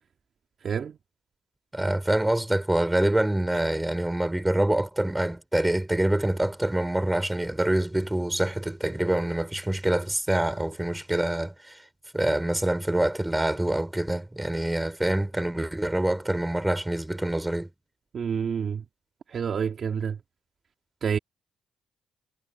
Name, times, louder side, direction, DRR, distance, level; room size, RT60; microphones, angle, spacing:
voice 1, 0.6-1.0 18.1-18.8 19.3-20.2 21.0-21.2, right 7 dB, 50° right, 2.2 m, -28 dB
voice 2, 1.7-11.8 12.1-17.7, right 1 dB, 10° right, 5.0 m, -26 dB
cardioid pair, 90°, 0 cm